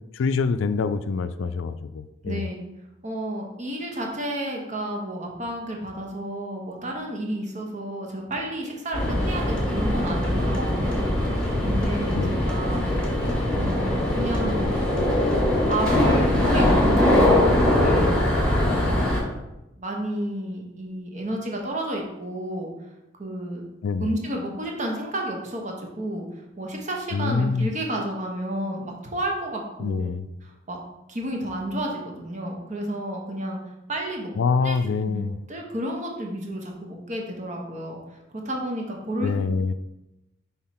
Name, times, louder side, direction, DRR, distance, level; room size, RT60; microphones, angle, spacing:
voice 1, 0.1-2.4 12.1-12.3 23.8-24.1 27.1-27.7 29.8-30.3 34.4-35.3 39.2-39.7, left 4 dB, 80° left, 11 dB, 0.4 m, -25 dB
voice 2, 2.2-2.6 3.0-11.0 11.6-12.9 13.5-14.7 15.6-18.2 18.6-19.3 19.7-22.7 23.2-23.6 24.0-30.0 30.4-30.8 31.1-33.6 33.9-34.3 34.6-34.8 35.1-35.2 35.5-38.0 38.4-39.3, right 1 dB, 40° right, 1 dB, 1.1 m, -31 dB
sound 1, 8.9-19.2, left 1 dB, 5° left, 1.7 m, -22 dB
5.7 x 3.8 x 4.3 m, 0.94 s
head